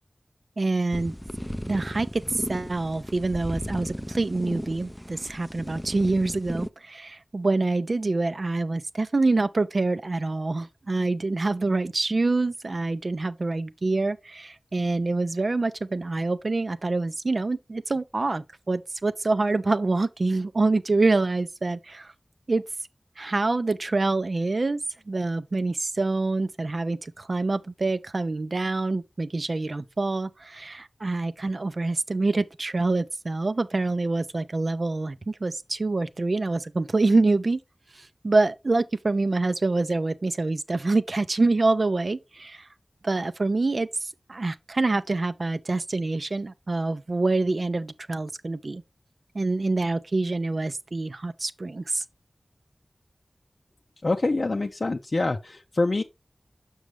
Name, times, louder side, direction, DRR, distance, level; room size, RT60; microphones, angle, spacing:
voice 1, 0.6-1.1 1.6-22.1 22.5-22.6 23.2-24.8 25.1-37.6 37.9-42.7 43.0-48.8 49.3-52.0, right 3 dB, 60° right, 0.5 m, -26 dB
sound 1, 0.9-6.7, equal, 5° left, 0.4 m, -35 dB
voice 2, 54.0-56.0, left 2 dB, 55° left, 0.5 m, -25 dB
6.5 x 6.2 x 3.2 m
wide cardioid pair, 65°, 0 cm